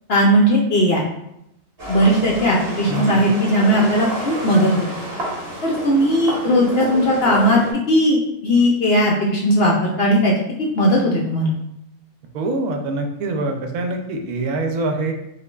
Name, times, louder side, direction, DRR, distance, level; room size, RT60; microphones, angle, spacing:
voice 1, 0.1-1.0 1.9-4.8 5.6-7.6 7.9-10.3 10.6-11.5, equal, 60° left, -2 dB, 0.7 m, -17 dB
sound 1, 1.8-7.7, equal, 45° right, 1.3 m, -29 dB
voice 2, 2.9-3.2 12.3-15.1, right 2 dB, 80° right, 4 dB, 1.0 m, -24 dB
4.9 x 2.5 x 2.2 m, 0.81 s
omnidirectional pair, 1.5 m